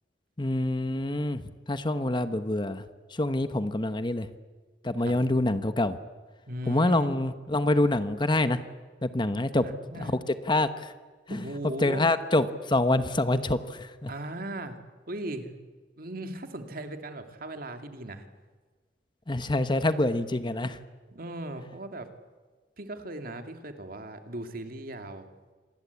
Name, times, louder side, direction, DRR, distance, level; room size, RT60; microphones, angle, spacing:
voice 1, 0.4-2.8 3.1-4.3 4.8-6.0 6.7-8.6 9.0-9.6 10.0-10.2 10.4-10.9 11.3-11.4 11.8-14.1 19.3-20.8, left 2 dB, 25° left, 11 dB, 1.1 m, -26 dB
voice 2, 6.5-7.2 9.5-10.1 11.3-12.1 14.1-14.8 15.1-15.5 16.0-18.3 21.1-22.1 22.8-25.3, right 1 dB, 55° right, 6 dB, 2.5 m, -38 dB
27.0 x 21.0 x 8.3 m, 1.4 s
head